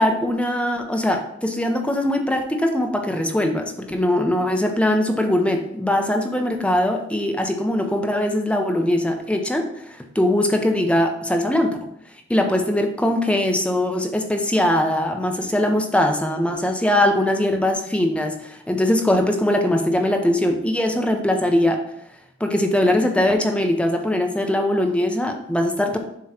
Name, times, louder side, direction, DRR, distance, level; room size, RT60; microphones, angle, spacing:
voice 1, 0.0-9.7 10.1-11.8 12.3-21.8 22.4-26.0, left 1 dB, 5° left, 4 dB, 0.7 m, -21 dB
7.4 x 3.1 x 5.7 m, 0.73 s
head